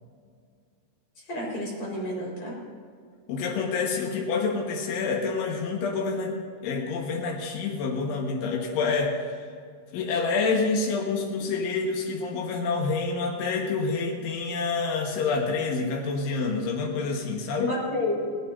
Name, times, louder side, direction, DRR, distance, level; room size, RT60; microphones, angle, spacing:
voice 1, 1.3-2.5 17.5-18.4, left 1 dB, 40° left, -3 dB, 5.8 m, -30 dB
voice 2, 3.3-9.2 9.9-17.7, left 4 dB, 85° left, 0 dB, 4.0 m, -27 dB
18.5 x 18.0 x 2.7 m, 2.1 s
omnidirectional pair, 5.3 m